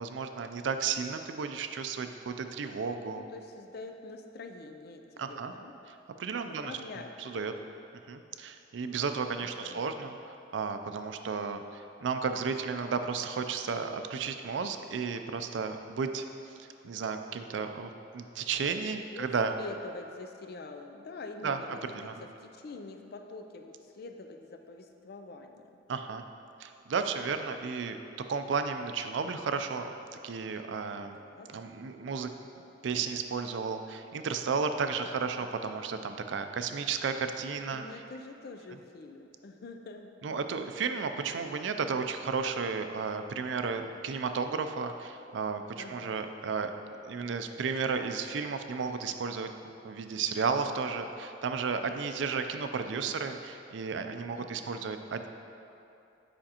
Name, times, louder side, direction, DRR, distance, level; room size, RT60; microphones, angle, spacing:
voice 1, 0.0-3.2 5.2-5.5 6.2-6.7 7.2-7.5 8.1-16.2 16.8-19.5 21.4-21.6 21.9-22.1 25.9-26.2 26.6-28.0 28.3-29.9 30.2-31.2 31.5-32.3 32.8-37.8 40.2-46.7 47.0-49.5 49.8-55.3, right 5 dB, 70° right, 7 dB, 0.4 m, -33 dB
voice 2, 3.1-5.0 5.3-5.7 6.5-7.7 9.4-9.9 19.1-19.3 19.6-25.8 31.1-31.5 35.0-35.1 35.4-35.5 37.7-40.1 45.8-46.5 52.9-53.1 54.4-54.9, left 3 dB, 55° left, 6 dB, 0.4 m, -46 dB
8.8 x 5.1 x 2.9 m, 2.7 s
head